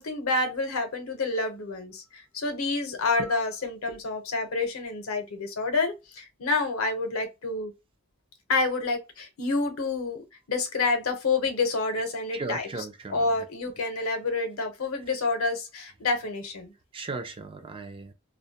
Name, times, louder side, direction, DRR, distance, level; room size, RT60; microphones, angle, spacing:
voice 1, 0.0-7.7 8.5-12.7 13.1-16.7, left 3 dB, 85° left, 0.7 m, -28 dB
voice 2, 12.3-13.5 16.9-18.1, right 3 dB, 25° right, 0.3 m, -37 dB
2.2 x 2.0 x 2.7 m
head